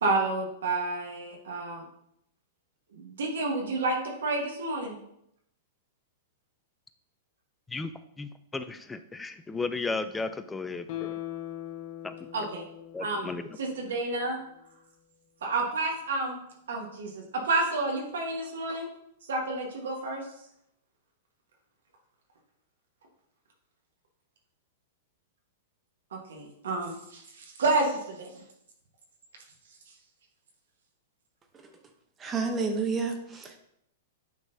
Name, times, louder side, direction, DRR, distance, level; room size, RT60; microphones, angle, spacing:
voice 1, 0.0-1.8 2.9-4.9 12.3-12.6 13.0-13.3 13.6-14.4 15.4-16.4 16.7-18.9 19.3-20.2 26.1-28.4, right 2 dB, 85° right, 0 dB, 1.3 m, -30 dB
voice 2, 7.7-11.2 12.0-12.1 12.9-13.4, left 3 dB, 10° left, 10 dB, 0.4 m, -35 dB
Guitar, 10.9-14.1 14.5-14.6, left 13 dB, 50° left, 0.8 m, -40 dB
voice 3, 32.2-33.6, right 4 dB, 20° right, 4 dB, 0.8 m, -30 dB
9.2 x 3.9 x 2.7 m, 0.76 s
hypercardioid pair, 140°, 0 cm